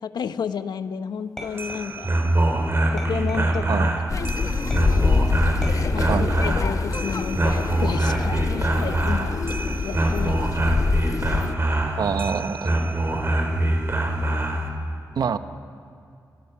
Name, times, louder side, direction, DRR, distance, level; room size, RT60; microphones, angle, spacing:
voice 1, 0.0-2.1 2.9-3.9 5.9-9.4 9.8-10.5, left 7 dB, 75° left, 11 dB, 0.9 m, -31 dB
sound 1, 1.4-2.3 3.0-3.9 4.7-5.1 5.6-6.7 7.2-7.6 8.1-8.8 9.6-10.0, left 1 dB, 5° left, 6.3 m, -40 dB
sound 2, 1.4-14.7, right 1 dB, 35° right, 3.9 m, -24 dB
sound 3, 4.1-11.5, left 4 dB, 50° left, 1.1 m, -25 dB
voice 2, 12.0-12.7 15.2-15.4, right 6 dB, 65° right, 11 dB, 0.9 m, -25 dB
29.5 x 18.5 x 5.9 m, 2.4 s
cardioid pair, 60°, 7 cm